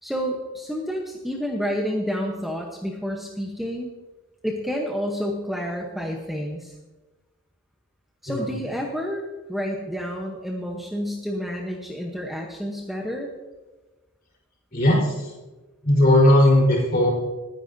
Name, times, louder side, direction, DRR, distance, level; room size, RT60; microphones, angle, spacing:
voice 1, 0.0-3.9 4.4-6.7 8.2-13.3, equal, ahead, 0 dB, 0.9 m, -29 dB
voice 2, 8.3-8.6 14.7-15.3 15.8-17.1, left 1 dB, 45° left, -4 dB, 4.2 m, -18 dB
20.0 x 10.5 x 2.7 m, 1.2 s
head